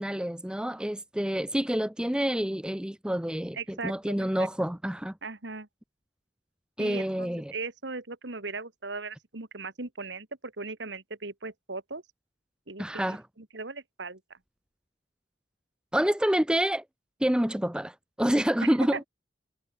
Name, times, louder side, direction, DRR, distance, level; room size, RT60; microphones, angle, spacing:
voice 1, 0.0-5.1 6.8-7.5 12.8-13.2 15.9-16.8 17.2-19.0, equal, 5° right, 0.5 m, -28 dB
voice 2, 3.5-4.5 5.2-5.7 6.8-12.0 12.7-14.2 18.6-19.0, right 3 dB, 75° right, 2.1 m, -38 dB
head